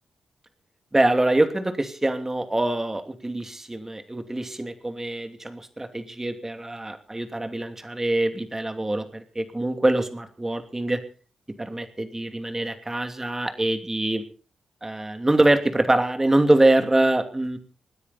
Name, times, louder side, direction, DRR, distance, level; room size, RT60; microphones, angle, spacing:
voice 1, 0.9-11.0 11.6-14.2 14.8-17.6, right 1 dB, 20° right, 7 dB, 2.8 m, -24 dB
26.0 x 9.9 x 4.2 m, 0.38 s
supercardioid pair, 45°, 2 cm